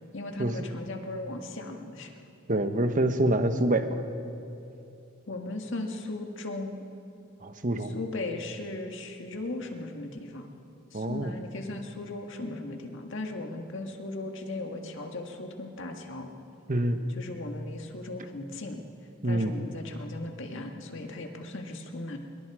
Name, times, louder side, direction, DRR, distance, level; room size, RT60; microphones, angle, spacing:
voice 1, 0.1-2.1 5.3-6.9 7.9-10.5 10.9-16.3 16.7-18.8 19.2-22.2, left 2 dB, 60° left, 3 dB, 1.8 m, -37 dB
voice 2, 2.5-4.0 7.4-8.0 10.9-11.3 16.7-17.0 19.2-19.5, right 1 dB, 40° right, 8 dB, 1.2 m, -26 dB
26.0 x 22.5 x 4.9 m, 2.7 s
head